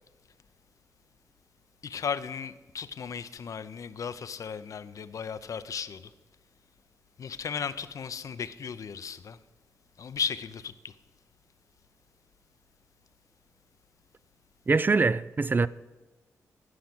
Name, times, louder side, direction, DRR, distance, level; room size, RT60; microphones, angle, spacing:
voice 1, 1.8-6.1 7.2-9.4 10.0-10.9, left 6 dB, 65° left, 0.6 m, -35 dB
voice 2, 14.7-15.7, right 4 dB, 35° right, 0.3 m, -23 dB
14.5 x 5.9 x 6.0 m
cardioid pair, 65°, 6 cm